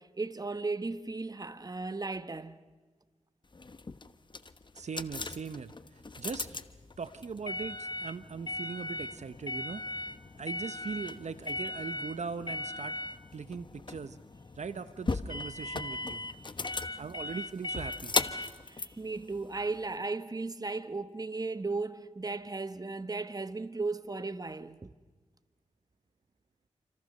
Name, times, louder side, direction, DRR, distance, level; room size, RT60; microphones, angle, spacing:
voice 1, 0.0-2.6 16.9-17.1 18.3-24.9, right 3 dB, 30° right, 1.2 m, -36 dB
sound 1, 3.5-20.0, left 3 dB, 35° left, 1.1 m, -37 dB
voice 2, 4.7-6.5 7.0-9.8 10.4-13.0 13.3-14.2 14.6-16.2 17.0-18.1, right 5 dB, 65° right, 1.0 m, -40 dB
28.5 x 26.0 x 6.7 m
cardioid pair, 50°, 13 cm